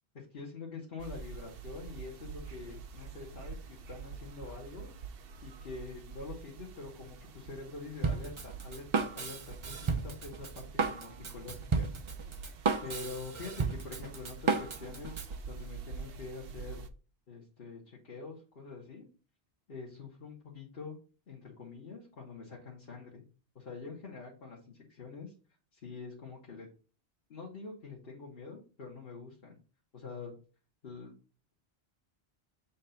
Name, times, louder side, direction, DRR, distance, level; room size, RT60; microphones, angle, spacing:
voice 1, 0.1-4.9 5.4-11.9 12.8-15.2 15.5-16.8 17.3-19.1 19.7-21.0 21.3-23.2 23.5-25.3 25.7-26.7 27.3-29.6 29.9-30.4 30.8-31.1, left 4 dB, 60° left, -3 dB, 1.6 m, -45 dB
sound 1, 1.0-16.9, right 5 dB, 65° right, 0.8 m, -47 dB
Drum kit, 8.0-15.3, right 4 dB, 35° right, 0.6 m, -33 dB
7.3 x 2.6 x 5.6 m, 0.36 s
omnidirectional pair, 1.1 m